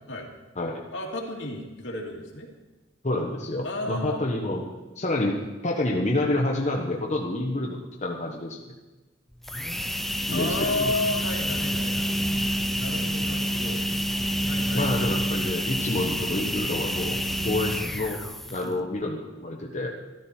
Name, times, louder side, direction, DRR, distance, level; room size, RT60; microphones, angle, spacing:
voice 1, 0.9-2.5 3.6-4.2 10.3-12.1 12.8-13.8 14.4-15.1 18.6-18.8, left 2 dB, 70° left, -1 dB, 2.4 m, -32 dB
voice 2, 3.0-4.6 5.0-8.6 10.3-11.0 14.7-17.2 17.4-18.2 18.5-19.9, left 1 dB, 40° left, -1 dB, 1.2 m, -28 dB
sound 1, 9.3-18.8, equal, ahead, 0.5 m, -28 dB
14.0 x 12.5 x 4.4 m, 1.2 s
head